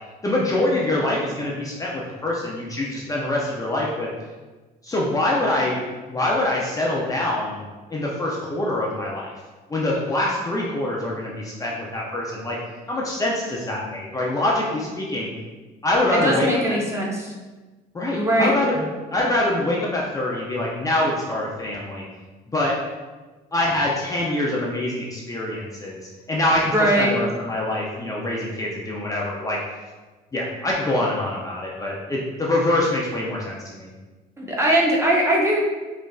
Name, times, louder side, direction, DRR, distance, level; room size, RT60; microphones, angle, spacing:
voice 1, 0.2-4.1 4.8-5.8 6.1-7.6 7.9-9.3 9.7-12.6 12.9-15.3 15.8-16.8 17.9-18.8 19.1-22.0 22.5-22.8 23.5-26.0 26.3-29.6 30.3-33.9, left 1 dB, 20° left, -4 dB, 0.5 m, -24 dB
voice 2, 16.1-17.3 18.2-18.5 26.7-27.1 34.4-35.6, right 1 dB, 15° right, -3 dB, 0.8 m, -20 dB
5.2 x 2.5 x 2.4 m, 1.3 s
cardioid pair, 110°, 17 cm